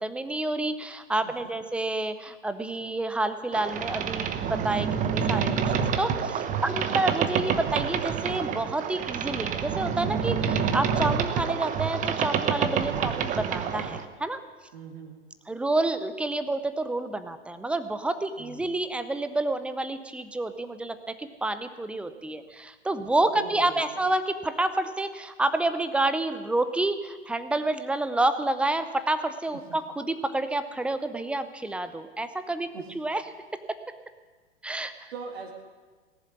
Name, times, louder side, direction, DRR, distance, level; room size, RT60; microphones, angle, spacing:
voice 1, 0.0-14.4 15.5-33.2 34.6-35.1, right 2 dB, 5° right, 11 dB, 0.6 m, -29 dB
Boat Water vehicle, 3.5-14.0, right 7 dB, 20° right, 1.0 m, -28 dB
voice 2, 12.9-13.3 14.7-15.2 18.4-18.7 23.3-23.8 29.7-29.8 32.7-32.9 35.1-35.5, right 5 dB, 60° right, 0 dB, 2.1 m, -41 dB
18.5 x 7.4 x 9.7 m, 1.4 s
figure-of-eight pair, 105°, 35 cm